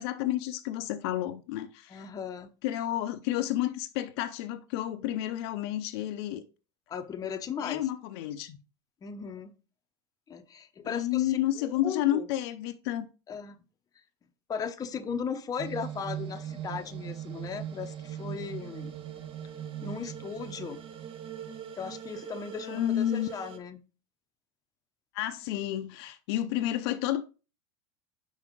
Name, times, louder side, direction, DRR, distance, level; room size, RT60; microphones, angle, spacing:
voice 1, 0.0-2.0 2.6-6.4 7.6-8.6 10.8-13.1 22.5-23.3 25.1-27.2, left 13 dB, 65° left, 0.6 m, -30 dB
voice 2, 1.9-2.5 6.9-7.9 9.0-9.5 10.3-12.3 13.3-13.6 14.5-19.0 19.8-20.8 21.8-23.8, left 6 dB, 25° left, 0.7 m, -37 dB
sound 1, 15.6-23.6, right 9 dB, 40° right, 0.9 m, -40 dB
5.5 x 5.2 x 3.6 m
hypercardioid pair, 105°, 14 cm